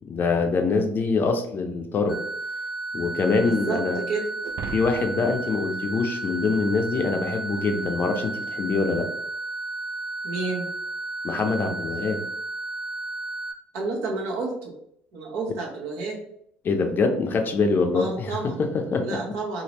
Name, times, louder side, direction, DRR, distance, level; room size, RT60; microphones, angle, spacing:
voice 1, 0.1-2.2 2.9-4.0 4.7-9.1 11.2-12.2 16.6-19.2, left 4 dB, 40° left, 5 dB, 0.6 m, -24 dB
sound 1, 2.1-13.5, right 2 dB, ahead, 0.8 m, -33 dB
voice 2, 3.4-4.3 10.2-10.7 13.7-14.7 15.1-16.2 17.9-18.6 19.0-19.6, right 3 dB, 70° right, -1 dB, 1.0 m, -30 dB
sound 2, 4.4-6.9, right 6 dB, 55° right, 0.4 m, -40 dB
3.5 x 2.0 x 3.0 m, 0.71 s
hypercardioid pair, 70°, 5 cm